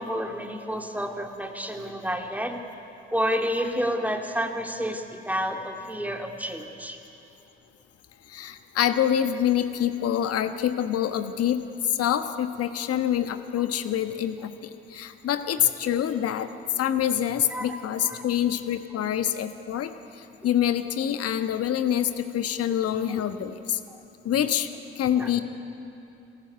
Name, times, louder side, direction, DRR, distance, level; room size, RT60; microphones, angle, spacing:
voice 1, 0.0-2.6 3.1-7.0 15.6-16.0 17.5-17.8 18.0-18.2 22.7-23.2 24.4-24.5 24.7-24.8 25.1-25.4, equal, 5° right, 3 dB, 2.5 m, -30 dB
voice 2, 8.3-16.5 16.7-23.8 24.2-24.7 24.9-25.4, left 10 dB, 55° left, 9 dB, 1.3 m, -26 dB
25.5 x 14.5 x 9.6 m, 2.9 s
figure-of-eight pair, 45°, 30 cm